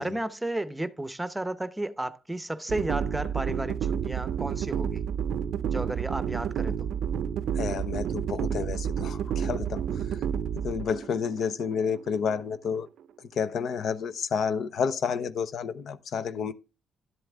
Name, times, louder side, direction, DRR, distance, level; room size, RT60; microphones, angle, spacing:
voice 1, 0.0-5.0 5.6-6.9, right 1 dB, 10° right, 0.8 m, -33 dB
sound 1, 2.7-12.8, right 8 dB, 75° right, 0.5 m, -30 dB
voice 2, 7.5-10.0 10.5-12.9 13.4-16.5, left 6 dB, 65° left, 0.7 m, -30 dB
11.5 x 7.7 x 3.5 m
cardioid pair, 90°, 0 cm